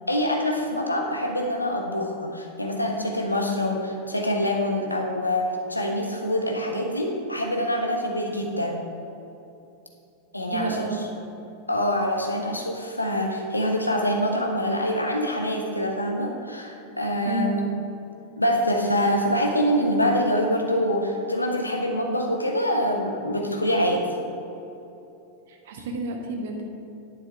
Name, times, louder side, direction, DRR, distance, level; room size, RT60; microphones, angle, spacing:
voice 1, 0.1-8.9 10.3-10.9 11.7-17.8 18.4-24.1, equal, 85° left, 1 dB, 1.2 m, -25 dB
voice 2, 10.5-11.1 17.2-17.6 25.5-26.6, right 2 dB, 55° right, 2 dB, 1.4 m, -30 dB
10.5 x 9.3 x 3.6 m, 2.9 s
figure-of-eight pair, 90°, 0 cm